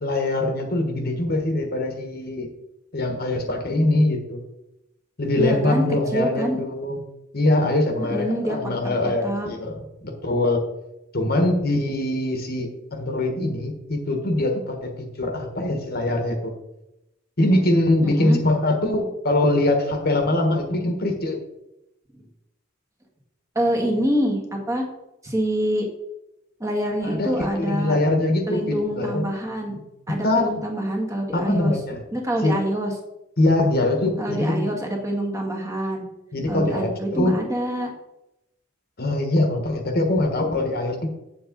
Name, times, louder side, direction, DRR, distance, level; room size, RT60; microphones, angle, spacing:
voice 1, 0.0-2.5 2.9-4.4 5.2-7.0 7.3-9.8 10.0-10.6 11.1-14.9 15.2-16.5 17.4-21.4 27.0-29.2 29.7-29.8 30.2-30.6 31.3-32.0 32.4-32.5 33.4-34.7 36.3-37.4 39.0-41.1, left 1 dB, 55° left, 4 dB, 1.4 m, -23 dB
voice 2, 5.4-5.9 6.1-6.6 8.0-8.6 9.2-9.5 18.0-18.4 22.1-22.2 23.6-24.8 25.2-25.9 26.6-28.0 28.5-29.8 30.1-31.8 32.1-32.9 34.2-36.0 36.5-37.9, equal, 15° right, 0 dB, 1.6 m, -26 dB
7.9 x 7.3 x 3.9 m, 0.88 s
head